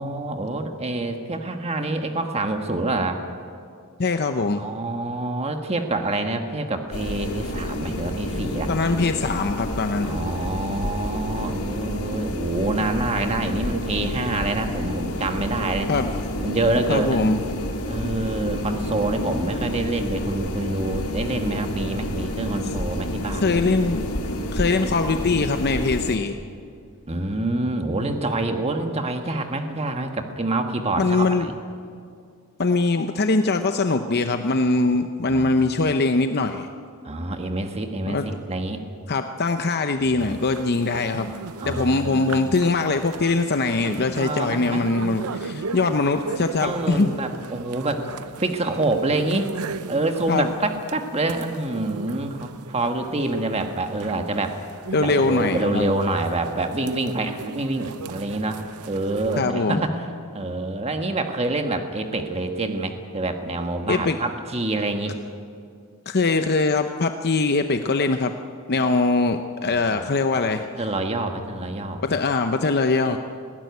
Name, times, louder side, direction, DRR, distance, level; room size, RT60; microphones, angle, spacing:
voice 1, 0.0-3.2 4.6-8.7 10.0-15.9 16.4-17.3 17.9-23.6 27.1-31.5 35.3-35.5 37.0-38.9 40.1-40.3 41.6-42.3 44.2-44.8 46.0-46.3 46.6-48.1 48.4-49.5 49.9-54.6 55.0-58.6 58.8-60.0 60.3-65.2 68.8-68.9 69.7-70.4 70.7-72.0, right 2 dB, 30° right, 5 dB, 1.4 m, -26 dB
voice 2, 4.0-4.7 8.7-10.1 15.9-16.1 16.9-17.4 23.4-24.1 24.5-26.4 31.0-31.5 32.6-36.7 38.1-38.3 39.1-41.3 41.7-47.1 50.3-50.5 54.9-55.9 59.4-59.8 63.9-64.2 66.1-68.3 68.7-70.6 72.0-73.2, left 3 dB, 45° left, 7 dB, 0.7 m, -22 dB
sound 1, 6.9-26.2, left 1 dB, 70° left, 2.2 m, -29 dB
sound 2, 40.2-59.4, right 4 dB, 75° right, 0.7 m, -37 dB
20.0 x 16.5 x 9.5 m, 2.4 s
head